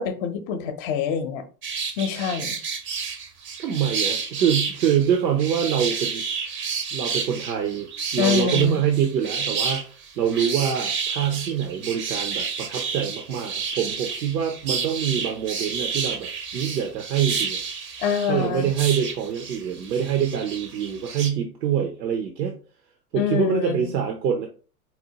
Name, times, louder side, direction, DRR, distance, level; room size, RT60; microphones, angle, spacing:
voice 1, 0.0-1.4 2.0-2.6 8.2-8.8 18.0-18.7 23.1-23.9, left 7 dB, 40° left, 8 dB, 0.6 m, -25 dB
sound 1, 1.6-21.3, right 5 dB, 25° right, 0.5 m, -30 dB
voice 2, 3.6-6.2 6.9-17.6 18.3-22.5 23.1-24.5, right 8 dB, 85° right, 4 dB, 0.7 m, -25 dB
4.2 x 2.1 x 2.8 m, 0.39 s
hypercardioid pair, 105°, 49 cm